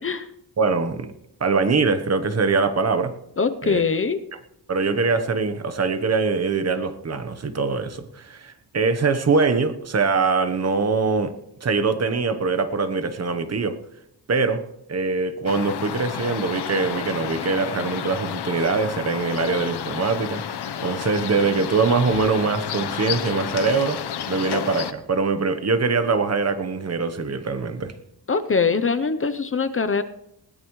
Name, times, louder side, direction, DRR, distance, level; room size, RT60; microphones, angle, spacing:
voice 1, 0.6-1.1 1.4-3.1 3.6-3.8 4.7-13.8 14.3-14.6 14.9-20.4 20.8-27.9, right 4 dB, 40° right, 1.1 m, -23 dB
voice 2, 3.4-4.2 28.3-30.0, left 5 dB, 30° left, 0.7 m, -22 dB
sound 1, 15.5-24.9, left 9 dB, 75° left, 1.0 m, -31 dB
20.0 x 17.5 x 3.2 m
wide cardioid pair, 165°, 40 cm